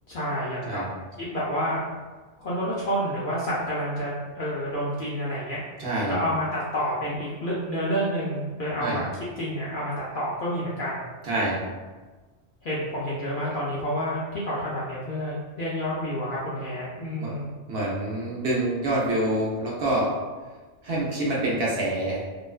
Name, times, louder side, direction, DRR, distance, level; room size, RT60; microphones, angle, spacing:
voice 1, 0.1-0.8 1.3-1.8 2.4-5.6 6.1-9.1 9.4-11.1 12.6-17.5, equal, 60° left, -7 dB, 0.6 m, -29 dB
voice 2, 5.8-6.2 8.8-9.0 11.2-11.6 17.2-17.3 17.7-20.1 20.8-22.2, right 1 dB, 65° right, -5 dB, 0.7 m, -26 dB
2.4 x 2.2 x 2.3 m, 1.3 s
omnidirectional pair, 1.3 m